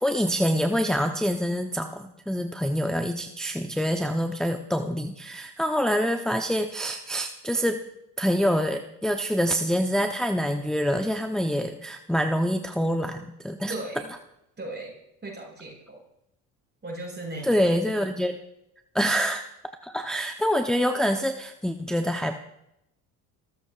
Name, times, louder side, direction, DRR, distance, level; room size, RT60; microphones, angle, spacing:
voice 1, 0.0-7.8 8.2-13.7 17.4-18.3 18.9-19.4 19.8-22.4, equal, ahead, 4 dB, 0.8 m, -26 dB
voice 2, 13.7-14.1 14.6-14.9 15.2-16.0 16.8-17.5, right 2 dB, 25° right, -1 dB, 7.0 m, -36 dB
29.5 x 14.0 x 2.5 m, 0.82 s
hypercardioid pair, 75°, 44 cm